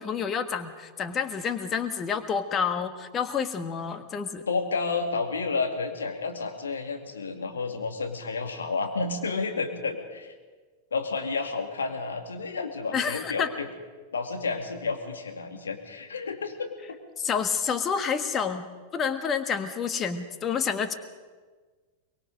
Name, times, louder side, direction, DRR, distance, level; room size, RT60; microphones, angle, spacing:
voice 1, 0.0-4.4 12.9-13.5 17.2-18.7 18.9-20.9, left 6 dB, 25° left, 9 dB, 1.5 m, -29 dB
voice 2, 4.5-10.3 10.9-13.7 14.1-17.0, left 4 dB, 70° left, 5 dB, 2.2 m, -31 dB
23.5 x 21.5 x 5.2 m, 1.4 s
figure-of-eight pair, 90°, 0 cm